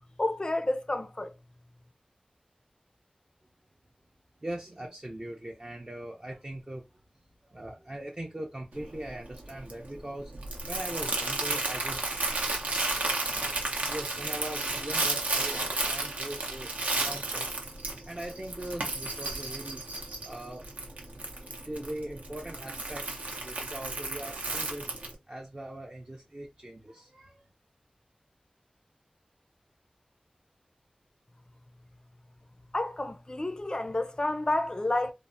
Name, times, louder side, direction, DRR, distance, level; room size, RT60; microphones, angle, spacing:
voice 1, 0.2-1.3 32.7-35.1, left 2 dB, 30° left, 0.4 m, -30 dB
voice 2, 4.4-6.9 7.4-10.3 10.7-12.0 13.6-16.7 17.0-17.6 18.1-19.8 20.2-20.7 21.4-24.9 25.3-27.4, right 1 dB, 30° right, 0.5 m, -40 dB
Crumpling crinkling, 8.7-25.1, right 2 dB, 75° right, 0.6 m, -33 dB
3.1 x 2.0 x 2.5 m
wide cardioid pair, 65°, 3 cm